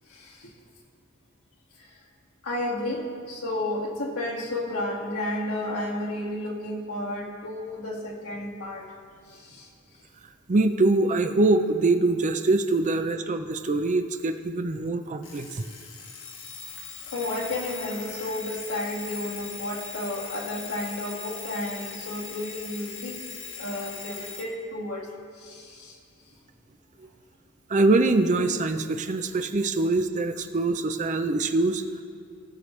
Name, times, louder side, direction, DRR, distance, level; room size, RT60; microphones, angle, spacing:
voice 1, 2.4-8.9 9.3-9.7 17.1-23.1 23.6-25.1 25.4-25.9, left 1 dB, 80° left, -3 dB, 2.0 m, -32 dB
voice 2, 10.5-15.5 27.7-31.8, right 2 dB, 35° right, 8 dB, 0.5 m, -23 dB
Alarm, 15.2-24.5, left 5 dB, 60° left, 1.2 m, -40 dB
19.0 x 6.6 x 3.2 m, 2.2 s
head